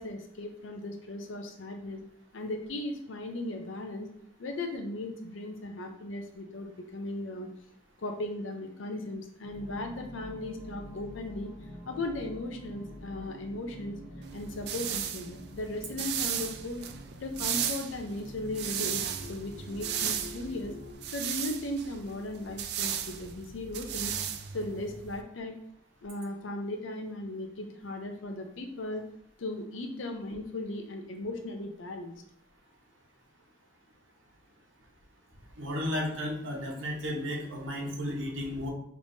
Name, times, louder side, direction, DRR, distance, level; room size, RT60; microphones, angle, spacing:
voice 1, 0.0-2.0 2.3-4.1 4.4-7.5 8.0-11.5 11.8-14.0 14.3-16.9 17.2-19.0 19.3-20.8 21.1-24.1 24.5-25.5 26.0-29.0 29.4-32.1 38.1-38.3, left 1 dB, 90° left, 4 dB, 0.6 m, -37 dB
sound 1, 9.4-20.9, left 1 dB, 50° left, 0.9 m, -47 dB
sound 2, 14.2-25.2, right 9 dB, 55° right, 0.3 m, -35 dB
voice 2, 35.6-38.7, left 1 dB, 90° right, 0 dB, 1.0 m, -33 dB
5.1 x 3.2 x 2.7 m, 0.68 s
head